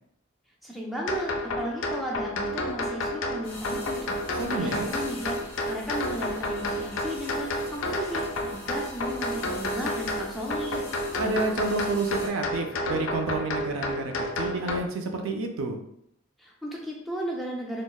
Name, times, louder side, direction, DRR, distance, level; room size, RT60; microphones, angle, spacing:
voice 1, 0.6-4.1 4.5-5.4 5.7-10.8 16.4-17.8, equal, ahead, -3 dB, 0.4 m, -35 dB
sound 1, 1.1-14.8, left 1 dB, 75° left, 0.4 m, -31 dB
sound 2, 3.4-12.3, left 1 dB, 45° left, 0.8 m, -44 dB
voice 2, 4.4-4.9 11.2-15.8, right 3 dB, 80° right, 4 dB, 0.4 m, -29 dB
3.4 x 2.0 x 2.2 m, 0.74 s
head